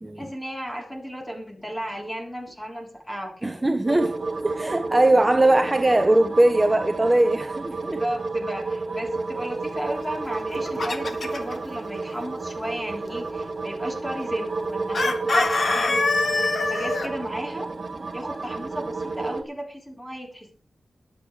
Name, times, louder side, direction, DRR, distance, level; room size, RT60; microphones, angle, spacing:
voice 1, 0.2-3.6 8.0-16.2 16.5-17.7 18.1-20.5, equal, 10° left, 3.7 m, -34 dB
voice 2, 3.4-4.2 4.4-8.0, right 1 dB, 20° right, 0.9 m, -20 dB
sound 1, 3.9-19.4, right 3 dB, 50° right, 2.2 m, -31 dB
Chicken rooster, 10.3-11.5 14.9-17.1, left 3 dB, 55° left, 1.9 m, -24 dB
22.0 x 8.3 x 3.3 m
wide cardioid pair, 115°, 0 cm